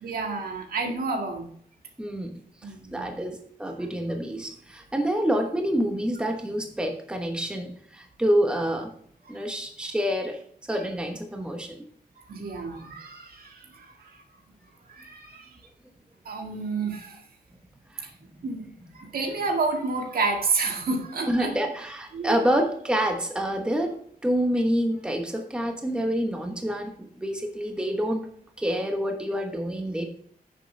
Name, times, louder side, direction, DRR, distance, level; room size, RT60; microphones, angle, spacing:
voice 1, 0.0-1.5 2.6-3.1 12.3-13.9 14.9-15.5 16.3-17.2 18.4-18.7 18.9-21.5 22.1-22.4, right 4 dB, 75° right, 3 dB, 1.9 m, -29 dB
voice 2, 2.0-2.3 2.6-8.9 9.3-10.4 10.7-11.8 17.9-18.1 18.4-18.5 21.3-28.3 28.6-30.1, equal, 5° right, 3 dB, 1.1 m, -27 dB
10.0 x 6.9 x 3.3 m, 0.62 s
wide cardioid pair, 130°, 16 cm